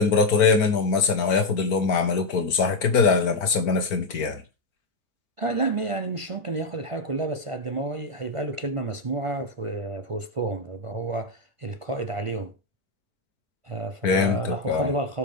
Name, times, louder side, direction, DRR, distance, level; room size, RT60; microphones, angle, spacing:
voice 1, 0.0-4.4 14.0-14.9, left 5 dB, 75° left, 1.6 m, -22 dB
voice 2, 5.4-12.5 13.6-15.2, right 2 dB, 45° right, 0.4 m, -30 dB
17.0 x 5.7 x 3.4 m
omnidirectional pair, 1.6 m